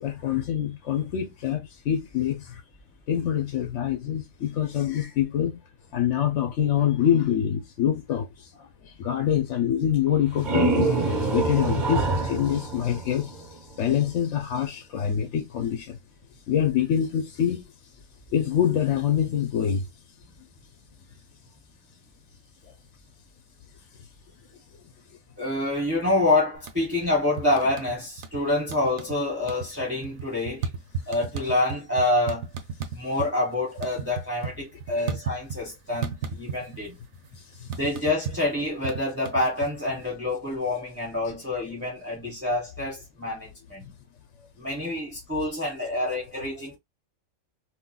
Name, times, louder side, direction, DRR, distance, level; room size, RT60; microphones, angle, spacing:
voice 1, 0.0-2.6 3.1-5.6 5.9-13.5 13.8-16.0 16.5-17.6 18.3-19.9 34.9-35.1 37.6-37.7, left 9 dB, 70° left, 0.9 m, -25 dB
sound 1, 10.1-13.7, right 3 dB, 40° right, 1.2 m, -26 dB
voice 2, 25.4-30.7 31.1-32.5 32.9-37.0 37.7-43.9 44.6-46.8, left 2 dB, 10° right, 1.4 m, -27 dB
sound 2, 26.6-27.1 27.4-28.4 28.7-29.2 29.4-33.3 33.6-35.7 36.0-36.9 37.1-40.0, right 6 dB, 90° right, 1.1 m, -34 dB
3.7 x 2.7 x 2.2 m
omnidirectional pair, 1.4 m